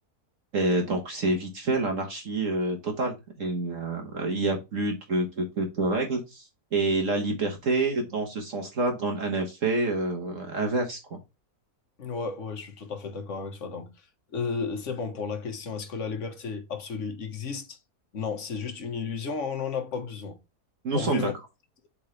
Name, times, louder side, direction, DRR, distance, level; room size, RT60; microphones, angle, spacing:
voice 1, 0.5-11.2 20.8-21.3, right 2 dB, 55° right, 1.5 m, -28 dB
voice 2, 12.0-13.9 14.3-17.8 18.1-20.4 20.9-21.3, left 5 dB, 50° left, 1.4 m, -33 dB
7.8 x 3.8 x 3.2 m
omnidirectional pair, 1.7 m